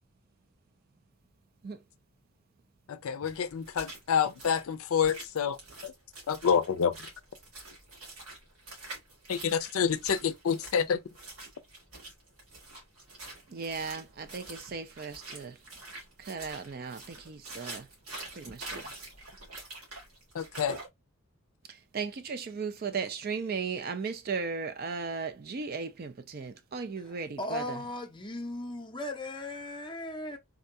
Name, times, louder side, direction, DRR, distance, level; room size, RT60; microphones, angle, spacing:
voice 1, 2.9-5.9 6.3-7.0 9.3-11.0 20.3-20.8, left 7 dB, 80° left, 0.4 m, -28 dB
sound 1, 3.2-20.9, right 2 dB, 85° right, 1.8 m, -46 dB
voice 2, 13.5-15.6 16.2-17.9 18.3-18.9 21.7-27.8, right 5 dB, 45° right, 0.4 m, -36 dB
voice 3, 27.4-30.4, left 1 dB, 20° left, 0.6 m, -37 dB
3.6 x 2.2 x 2.6 m
head